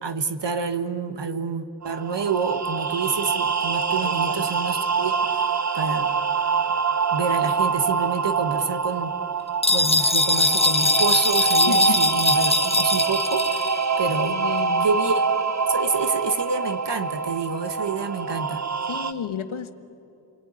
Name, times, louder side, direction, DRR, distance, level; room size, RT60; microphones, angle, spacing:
voice 1, 0.0-5.1 5.7-6.1 7.1-9.1 9.7-13.4 14.0-14.4 14.8-15.2 15.7-18.6, right 5 dB, 60° right, 9 dB, 1.4 m, -28 dB
sound 1, 1.8-19.1, right 5 dB, 35° right, 1.2 m, -25 dB
voice 2, 4.0-4.5 11.7-12.1 14.3-14.9 18.9-19.7, left 7 dB, 85° left, 10 dB, 1.3 m, -32 dB
sound 2, 9.6-13.8, left 2 dB, 10° left, 1.0 m, -22 dB
28.5 x 20.0 x 9.7 m, 2.7 s
cardioid pair, 60°, 48 cm